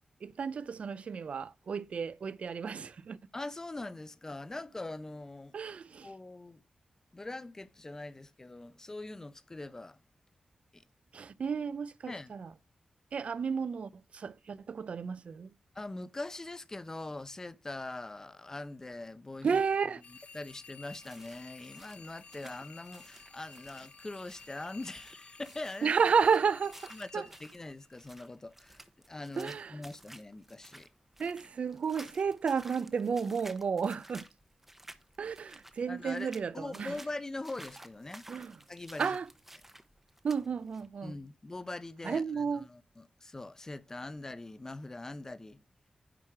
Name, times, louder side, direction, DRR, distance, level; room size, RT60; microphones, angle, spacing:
voice 1, 0.2-3.2 5.5-6.1 11.1-12.5 13.1-15.5 19.4-20.0 25.8-27.3 29.4-29.8 31.2-34.2 35.2-36.9 38.3-38.6 39.0-39.3 40.2-41.1 42.0-42.6, right 6 dB, 65° right, 0.5 m, -32 dB
voice 2, 3.3-5.6 6.0-6.6 7.1-10.0 10.7-10.8 12.1-12.3 15.7-19.6 20.1-25.9 26.9-30.9 35.9-36.3 36.5-38.3 38.7-39.2 41.0-45.6, left 2 dB, 25° left, 0.6 m, -42 dB
sound 1, 20.0-28.2, left 4 dB, 60° left, 0.7 m, -54 dB
sound 2, 21.0-40.9, right 1 dB, 10° right, 0.8 m, -54 dB
10.0 x 4.8 x 4.7 m
wide cardioid pair, 115°, 2 cm